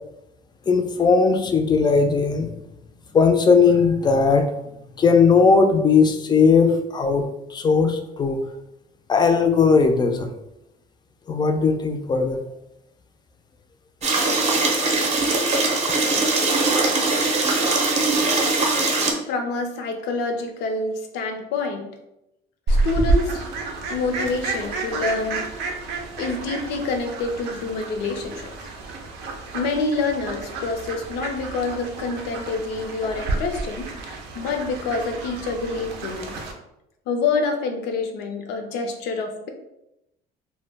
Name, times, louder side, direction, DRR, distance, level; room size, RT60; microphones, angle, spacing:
voice 1, 0.7-2.5 3.1-4.5 5.0-7.2 7.5-8.4 9.1-10.3 11.3-12.4, left 5 dB, 25° left, 6 dB, 0.3 m, -18 dB
sound 1, 14.0-19.1, right 3 dB, 40° right, 0.5 m, -21 dB
voice 2, 19.0-21.9 22.7-23.5 23.9-25.5 26.2-28.5 29.5-36.4 37.1-39.5, left 3 dB, 90° left, 5 dB, 0.5 m, -27 dB
Fowl, 22.7-36.5, right 3 dB, 85° right, 0.5 m, -29 dB
2.2 x 2.0 x 3.3 m, 0.86 s
cardioid pair, 110°, 17 cm